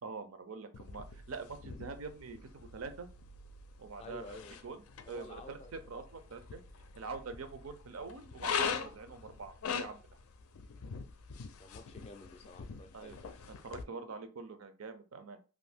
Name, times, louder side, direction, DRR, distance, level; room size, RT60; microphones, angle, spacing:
voice 1, 0.0-3.1 3.8-6.6 7.0-10.0 12.9-13.2 13.6-15.4, right 4 dB, 75° right, 8 dB, 0.5 m, -45 dB
sound 1, 0.7-13.8, left 6 dB, 90° left, 0.4 m, -43 dB
voice 2, 4.0-4.6 5.0-5.7 11.6-13.4, left 2 dB, 30° left, 8 dB, 0.4 m, -51 dB
2.6 x 2.6 x 3.4 m, 0.34 s
head